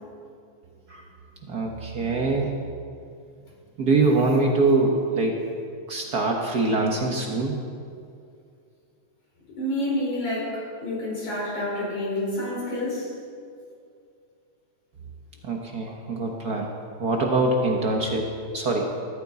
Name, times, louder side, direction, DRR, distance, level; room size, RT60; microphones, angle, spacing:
voice 1, 1.5-2.5 3.8-5.3 5.9-7.6 15.4-16.7 17.0-18.3 18.5-18.9, right 3 dB, 65° right, 1 dB, 0.9 m, -23 dB
voice 2, 9.6-13.1, left 1 dB, 80° left, -6 dB, 6.0 m, -28 dB
16.0 x 14.0 x 4.1 m, 2.3 s
omnidirectional pair, 3.4 m